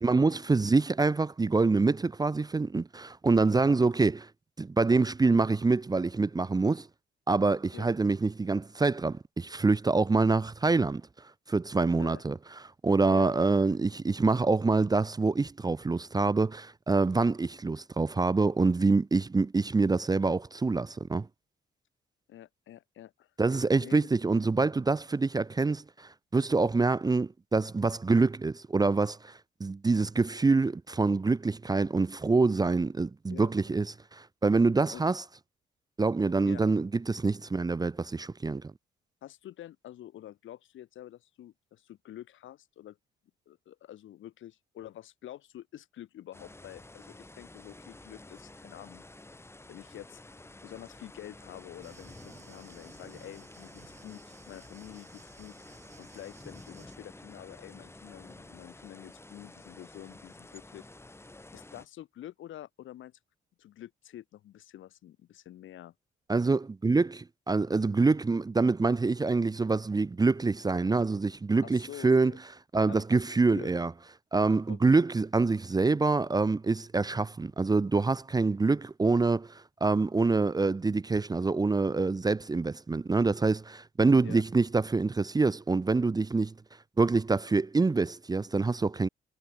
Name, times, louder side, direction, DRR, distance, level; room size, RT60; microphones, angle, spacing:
voice 1, 0.0-4.3 4.6-6.9 7.3-11.0 11.5-12.4 12.8-21.3 23.4-33.9 34.1-35.2 36.0-38.7 66.3-72.3 72.7-73.9 74.3-86.5 87.0-89.1, right 3 dB, 20° right, 0.7 m, -26 dB
voice 2, 22.3-23.3 23.7-24.1 33.3-33.5 34.9-35.0 36.5-36.6 39.2-43.0 43.5-49.0 49.7-50.2 50.6-55.5 56.0-60.9 61.5-63.2 63.6-65.9 71.6-72.4 72.9-73.2 73.5-73.8 74.7-74.8 84.2-84.4, left 12 dB, 75° left, 6.8 m, -47 dB
sound 1, 46.3-61.9, left 2 dB, 10° left, 2.1 m, -50 dB
Thunder, 51.8-57.0, right 5 dB, 35° right, 3.3 m, -57 dB
cardioid pair, 90°, 20 cm